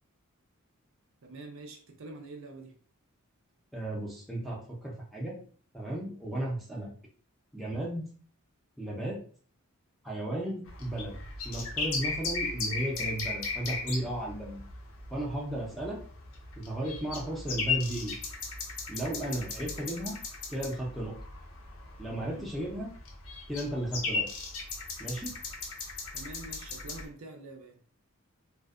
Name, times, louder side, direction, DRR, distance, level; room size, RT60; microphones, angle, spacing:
voice 1, 1.2-2.8 22.2-22.5 26.1-27.8, right 2 dB, 60° right, 3 dB, 0.4 m, -45 dB
voice 2, 3.7-5.4 5.7-6.9 7.5-8.0 8.8-9.2 10.0-11.2 11.4-14.6 15.1-16.0 16.6-18.1 18.9-20.2 20.5-21.1 22.0-22.9 23.5-24.3 25.0-25.3, right 1 dB, ahead, -4 dB, 0.6 m, -34 dB
sound 1, 10.7-27.0, left 4 dB, 70° left, 0.6 m, -37 dB
2.5 x 2.2 x 2.4 m, 0.44 s
head